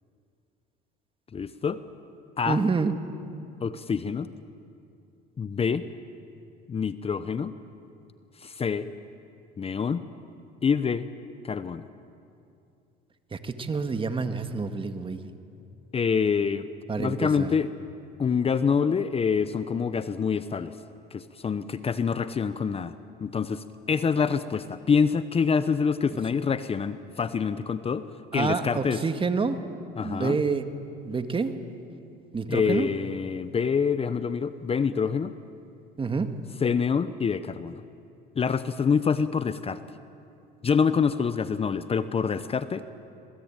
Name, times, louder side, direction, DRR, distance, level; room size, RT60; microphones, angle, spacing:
voice 1, 1.3-1.8 2.4-2.7 3.6-4.3 5.4-5.9 6.7-7.5 8.4-8.9 9.6-10.0 10.6-11.1 11.4-11.9 15.9-16.7 17.0-17.7 18.2-20.7 21.1-23.0 23.2-28.1 28.3-29.0 30.0-30.4 32.5-35.3 36.6-37.8 38.4-39.8 40.6-42.9, left 6 dB, 30° left, 13 dB, 0.9 m, -26 dB
voice 2, 2.5-2.9 13.3-15.3 16.9-17.5 28.3-29.6 30.0-30.6 31.0-31.5 32.3-32.9 36.0-36.3, right 4 dB, 25° right, 8 dB, 1.9 m, -28 dB
27.0 x 20.0 x 9.0 m, 2.6 s
supercardioid pair, 90°, 19 cm